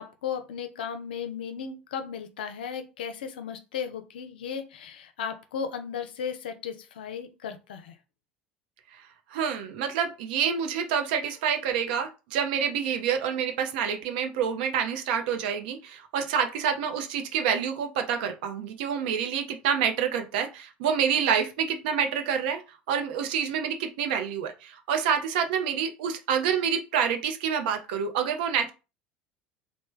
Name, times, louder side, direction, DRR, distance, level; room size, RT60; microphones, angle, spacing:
voice 1, 0.0-7.9, left 7 dB, 75° left, 8 dB, 0.5 m, -35 dB
voice 2, 9.3-22.6 22.9-28.7, right 7 dB, 65° right, 6 dB, 0.6 m, -27 dB
3.1 x 2.1 x 3.2 m, 0.30 s
figure-of-eight pair, 70°, 5 cm